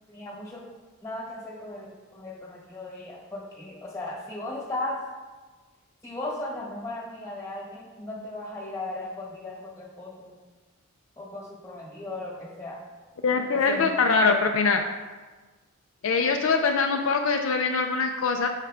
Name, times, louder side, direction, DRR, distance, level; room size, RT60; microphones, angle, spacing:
voice 1, 0.1-0.6 1.0-5.0 6.0-10.3 11.2-12.8 13.5-13.8, left 2 dB, 15° left, -3 dB, 1.3 m, -36 dB
voice 2, 13.2-14.8 16.0-18.5, left 4 dB, 65° left, 4 dB, 0.4 m, -23 dB
6.4 x 4.8 x 3.3 m, 1.3 s
head